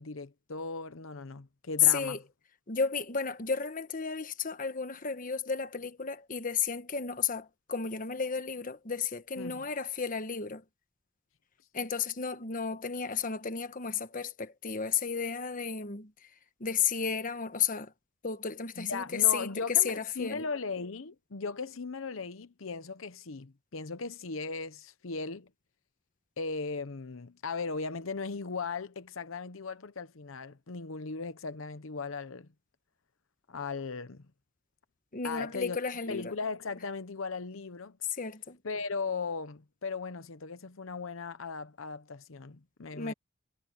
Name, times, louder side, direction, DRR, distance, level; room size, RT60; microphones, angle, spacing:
voice 1, 0.0-2.2 9.4-9.6 18.8-25.5 26.4-32.5 33.5-34.3 35.2-35.8 36.1-38.0 38.6-43.1, left 4 dB, 85° left, 0.9 m, -37 dB
voice 2, 1.9-2.2 2.7-10.6 11.7-16.3 16.6-17.9 18.2-20.4 35.1-36.3 38.2-38.6 43.0-43.1, left 6 dB, 40° left, 1.3 m, -32 dB
head